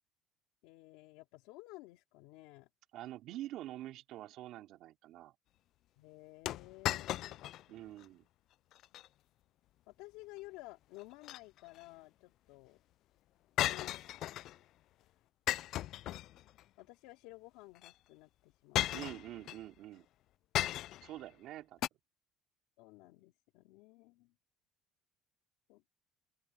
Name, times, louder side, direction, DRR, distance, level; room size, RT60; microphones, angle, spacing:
voice 1, 0.6-2.7 6.0-7.4 7.8-7.9 8.9-9.0 9.9-12.8 13.6-14.0 15.0-15.1 16.8-18.9 22.8-24.3 25.7-25.9, left 21 dB, 80° left, 3.4 m, -54 dB
voice 2, 2.9-5.3 7.7-8.3 18.9-20.1 21.0-21.8, right 14 dB, 55° right, 3.5 m, -46 dB
sound 1, 6.5-7.6 8.0-8.1 8.7-9.1 11.0-11.8 13.6-14.6 15.5-16.6 17.8-17.9 18.7-19.6 20.5-21.1 21.8-21.9, left 14 dB, 50° left, 0.3 m, -36 dB
open air
cardioid pair, 150°, 0 cm